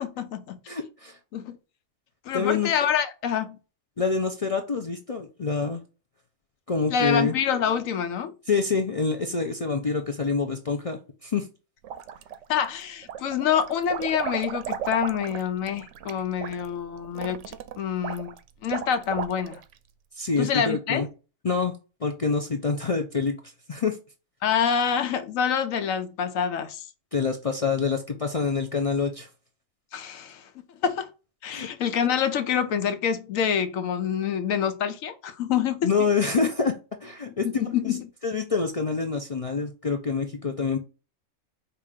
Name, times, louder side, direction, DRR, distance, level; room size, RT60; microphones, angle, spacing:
voice 1, 0.0-0.6 1.3-1.6 2.3-3.6 6.9-8.3 12.5-18.3 18.6-19.6 20.4-21.1 24.4-26.8 29.9-31.1 31.4-35.9 37.4-38.0, left 8 dB, 75° left, 1.1 m, -26 dB
voice 2, 0.7-1.2 2.3-2.7 4.0-5.8 6.7-7.3 8.5-11.5 20.2-21.1 21.4-21.7 22.0-23.4 23.7-24.0 27.1-29.3 31.5-31.7 35.8-36.7 37.0-38.0 38.2-40.8, left 5 dB, 60° left, 0.3 m, -26 dB
sound 1, 11.8-12.6 13.0-19.7, right 9 dB, 70° right, 0.8 m, -35 dB
5.0 x 2.9 x 3.6 m
omnidirectional pair, 1.4 m